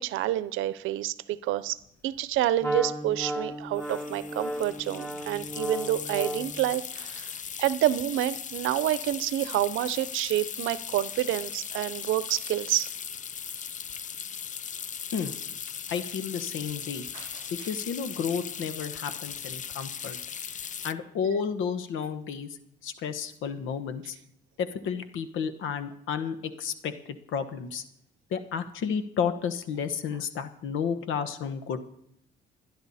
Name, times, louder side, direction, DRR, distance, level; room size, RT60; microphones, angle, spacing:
voice 1, 0.0-1.8 2.0-7.3 7.6-12.9 17.1-17.7, right 14 dB, 90° right, 16 dB, 0.7 m, -28 dB
sound 1, 1.8-1.9 2.1-2.4 3.8-20.9, left 8 dB, 40° left, 0.5 m, -38 dB
Wind instrument woodwind instrument, 2.6-6.7, equal, 15° left, 2.4 m, -34 dB
voice 2, 15.9-17.0 17.6-20.2 20.8-22.6 22.8-24.2 24.6-27.8 28.3-31.8, left 7 dB, 85° left, 10 dB, 1.3 m, -32 dB
28.5 x 10.5 x 4.2 m, 0.78 s
cardioid pair, 90°, 20 cm